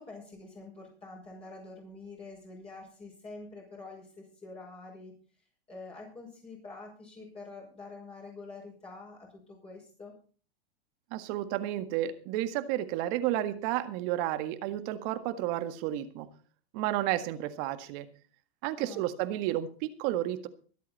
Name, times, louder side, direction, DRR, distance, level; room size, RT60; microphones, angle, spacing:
voice 1, 0.0-5.1 5.7-10.1 18.8-19.0, left 3 dB, 20° left, -3 dB, 6.0 m, -46 dB
voice 2, 11.1-16.3 16.7-18.1 18.6-20.5, right 13 dB, 50° right, 10 dB, 1.8 m, -31 dB
24.0 x 8.3 x 4.2 m, 0.40 s
hypercardioid pair, 125°, 32 cm